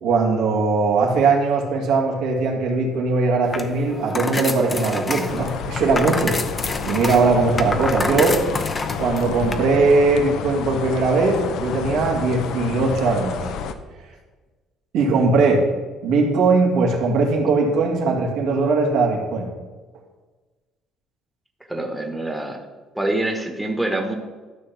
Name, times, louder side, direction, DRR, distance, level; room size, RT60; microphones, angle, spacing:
voice 1, 0.0-6.3 6.8-8.4 9.0-13.4 14.9-15.6 16.0-19.5, right 3 dB, 80° right, -1 dB, 2.2 m, -20 dB
sound 1, 3.4-9.5, left 3 dB, 25° left, 0.7 m, -28 dB
sound 2, 5.3-13.7, left 7 dB, 70° left, 0.7 m, -30 dB
voice 2, 21.7-22.6 22.9-24.1, right 1 dB, 5° right, 2 dB, 1.2 m, -25 dB
13.0 x 5.9 x 3.5 m, 1.3 s
cardioid pair, 95°, 0 cm